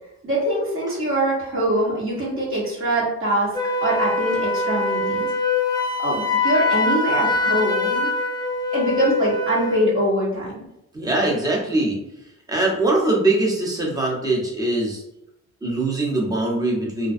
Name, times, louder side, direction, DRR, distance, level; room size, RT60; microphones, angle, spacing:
voice 1, 0.2-3.5 3.8-5.3 6.0-8.1 8.7-10.6, right 1 dB, 45° right, -6 dB, 1.2 m, -23 dB
Wind instrument woodwind instrument, 3.5-9.9, left 3 dB, 15° left, 0.5 m, -23 dB
voice 2, 10.9-12.0 12.5-15.0 15.6-17.1, right 2 dB, 10° right, -3 dB, 0.8 m, -22 dB
2.5 x 2.2 x 2.5 m, 0.85 s
cardioid pair, 90°, 30 cm